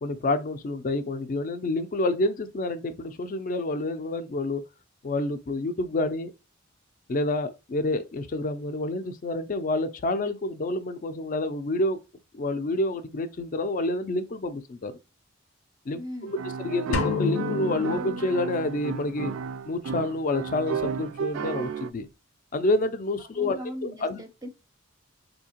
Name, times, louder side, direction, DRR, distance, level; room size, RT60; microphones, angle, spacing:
voice 1, 0.0-4.6 5.0-6.3 7.1-12.0 12.3-14.9 15.9-16.4 16.6-19.3 19.7-22.1 22.5-24.2, left 2 dB, 40° left, 0.4 m, -28 dB
voice 2, 15.9-16.3 23.4-24.5, equal, 20° right, 0.5 m, -38 dB
sound 1, 16.3-21.9, right 6 dB, 75° right, 0.3 m, -33 dB
sound 2, 16.9-19.0, left 4 dB, 85° left, 0.6 m, -30 dB
3.6 x 2.8 x 2.8 m
head